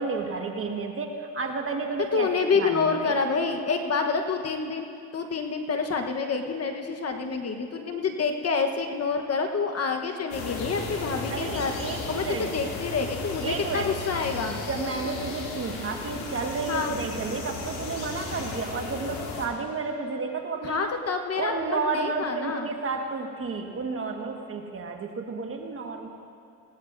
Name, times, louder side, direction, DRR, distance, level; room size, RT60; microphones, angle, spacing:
voice 1, 0.0-2.3 2.5-3.2 11.3-12.5 13.4-13.9 14.7-20.8 21.4-26.1, right 4 dB, 35° right, 3 dB, 1.7 m, -31 dB
voice 2, 2.1-4.9 5.1-11.7 12.1-14.6 16.7-16.9 20.6-22.7, left 4 dB, 40° left, 5 dB, 1.3 m, -28 dB
sound 1, 10.3-19.5, left 3 dB, 90° left, 2.3 m, -35 dB
19.0 x 17.5 x 2.7 m, 2.7 s
supercardioid pair, 75°, 38 cm